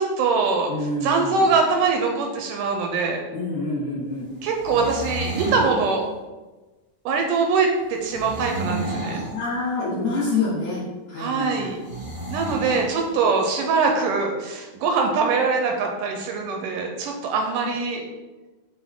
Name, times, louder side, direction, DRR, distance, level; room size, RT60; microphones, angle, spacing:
voice 1, 0.0-3.2 4.4-6.1 7.1-9.2 11.2-11.8 12.3-18.0, right 4 dB, 80° right, 2 dB, 2.0 m, -23 dB
voice 2, 0.7-1.6 3.3-4.3 9.1-10.8 11.1-11.7, left 3 dB, 60° left, -5 dB, 1.9 m, -27 dB
sound 1, 4.4-5.7 8.0-9.3 11.8-12.9, right 2 dB, 25° right, 0.9 m, -30 dB
6.0 x 4.4 x 3.6 m, 1.2 s
omnidirectional pair, 4.0 m